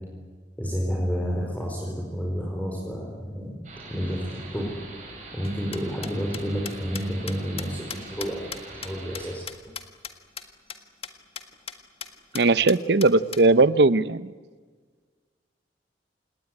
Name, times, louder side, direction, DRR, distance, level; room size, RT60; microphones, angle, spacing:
voice 1, 0.6-3.5 3.9-4.2 4.5-4.7 5.3-8.4 8.8-9.4, equal, 10° left, -2 dB, 4.8 m, -30 dB
sound 1, 3.6-9.4, right 3 dB, 45° right, 7.8 m, -43 dB
sound 2, 5.4-10.1 10.4-10.5 10.7-10.8 11.0-11.1 11.4-11.7 12.0-12.1 12.3-13.4, left 7 dB, 35° left, 1.7 m, -37 dB
voice 2, 12.3-14.3, right 3 dB, 65° right, 16 dB, 0.7 m, -19 dB
27.5 x 19.5 x 9.6 m, 1.5 s
head